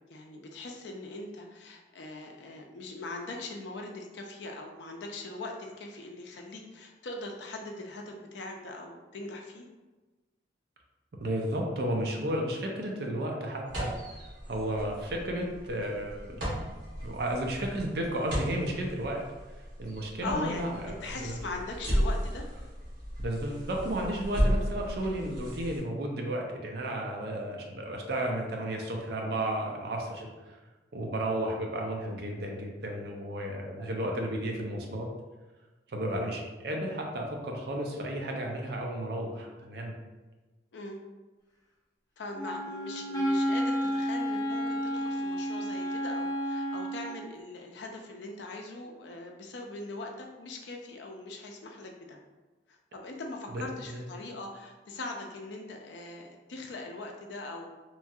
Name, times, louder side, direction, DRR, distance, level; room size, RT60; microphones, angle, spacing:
voice 1, 0.1-9.7 20.2-22.5 40.7-41.0 42.2-52.2 52.7-57.7, left 2 dB, 75° left, 2 dB, 0.4 m, -41 dB
voice 2, 11.2-13.9 14.5-16.5 17.0-19.2 19.8-21.4 23.2-30.3 30.9-35.1 35.9-39.9 53.5-54.0, right 1 dB, 60° right, 1 dB, 0.5 m, -33 dB
sound 1, 13.7-25.8, equal, 85° right, 1.2 m, -34 dB
Wind instrument woodwind instrument, 42.4-47.2, equal, 20° left, 0.9 m, -31 dB
3.0 x 2.3 x 2.6 m, 1.2 s
head